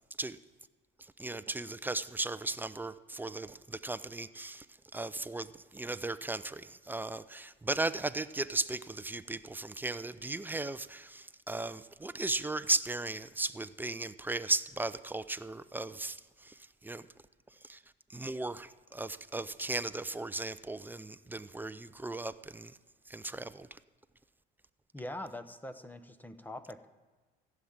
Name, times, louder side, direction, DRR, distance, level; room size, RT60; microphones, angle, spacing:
voice 1, 1.0-4.7 4.9-17.1 17.6-17.8 18.1-22.8 23.1-23.8, right 2 dB, 10° right, 14 dB, 0.4 m, -36 dB
voice 2, 24.9-26.9, left 1 dB, 10° left, 11 dB, 0.8 m, -43 dB
15.5 x 7.3 x 9.4 m, 1.2 s
cardioid pair, 115°, 20 cm